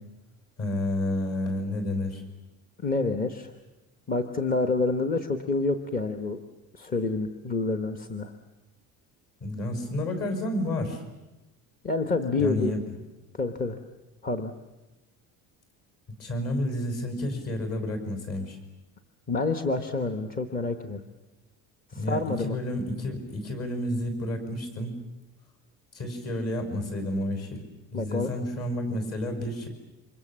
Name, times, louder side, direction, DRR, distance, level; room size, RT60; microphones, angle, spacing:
voice 1, 0.6-2.2 9.4-11.0 12.4-12.8 16.2-18.6 22.0-25.0 25.9-27.6 27.9-29.7, left 1 dB, 45° left, 6 dB, 5.9 m, -30 dB
voice 2, 2.8-3.5 4.1-6.4 6.7-8.3 11.8-12.8 13.3-13.8 14.2-14.5 19.3-21.0 21.9-22.6 27.9-28.3, left 3 dB, 25° left, 6 dB, 1.1 m, -28 dB
28.5 x 25.5 x 7.5 m, 1.0 s
cardioid pair, 175°, 36 cm